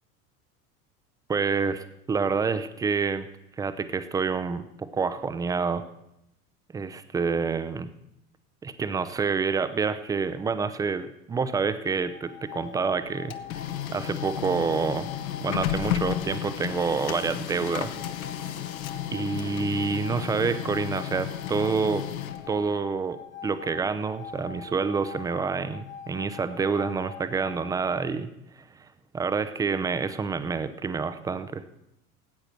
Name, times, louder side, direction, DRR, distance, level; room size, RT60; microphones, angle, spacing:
voice 1, 1.3-3.3 3.6-5.8 6.7-7.9 8.6-13.6 13.9-15.1 15.4-17.9 18.2-18.5 19.1-22.0 22.5-28.3 28.6-28.7 29.1-31.6, right 5 dB, 10° right, 12 dB, 0.4 m, -28 dB
sound 1, 11.9-27.8, left 7 dB, 90° left, 4.7 m, -44 dB
Printer, 13.0-22.8, left 11 dB, 65° left, 1.0 m, -33 dB
17.5 x 8.8 x 4.4 m, 0.81 s
figure-of-eight pair, 75°, 46 cm